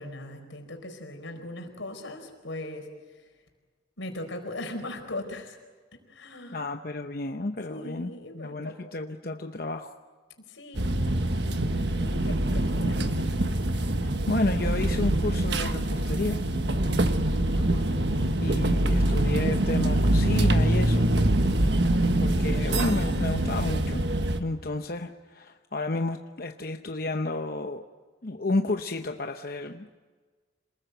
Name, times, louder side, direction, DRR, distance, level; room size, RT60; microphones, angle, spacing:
voice 1, 0.0-3.3 4.0-5.6 5.9-6.7 7.7-8.9 10.5-13.3 17.6-18.6, left 1 dB, 85° left, 5 dB, 4.6 m, -40 dB
voice 2, 6.5-9.9 14.0-16.4 18.4-21.1 22.2-24.0 24.4-27.8 28.2-30.0, left 2 dB, 50° left, 5 dB, 0.8 m, -31 dB
sound 1, 10.7-24.4, right 1 dB, 65° right, 1.5 m, -24 dB
27.0 x 20.5 x 8.1 m, 1.4 s
head